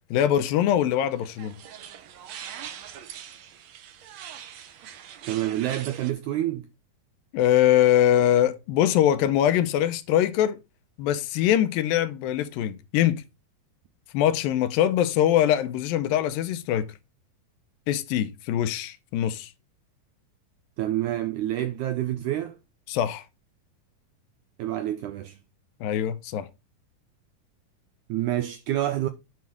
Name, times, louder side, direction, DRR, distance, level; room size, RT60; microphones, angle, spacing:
voice 1, 0.1-1.5 7.3-10.6 11.0-13.2 14.1-16.9 17.9-19.5 22.9-23.2 25.8-26.5, left 11 dB, 85° left, 2.4 m, -23 dB
sound 1, 1.1-6.1, right 9 dB, 70° right, 1.7 m, -42 dB
voice 2, 5.3-6.7 20.8-22.6 24.6-25.3 28.1-29.1, right 13 dB, 90° right, 1.8 m, -28 dB
9.6 x 4.0 x 4.7 m
omnidirectional pair, 4.2 m